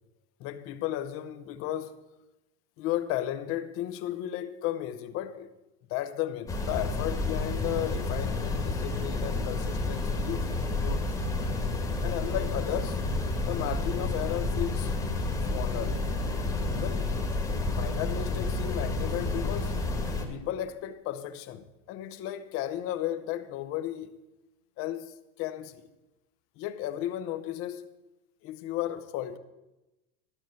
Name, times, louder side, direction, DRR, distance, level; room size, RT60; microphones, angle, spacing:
voice 1, 0.4-2.0 2.8-5.5 5.9-10.5 10.8-11.1 12.0-13.0 13.5-14.9 15.5-16.0 16.7-17.2 17.7-19.8 20.3-24.1 24.8-25.9 26.6-27.9 28.4-29.4, left 12 dB, 45° left, 0.9 m, -34 dB
sound 1, 6.5-20.2, left 2 dB, 10° left, 1.5 m, -30 dB
13.0 x 6.1 x 8.1 m
supercardioid pair, 145°, 31 cm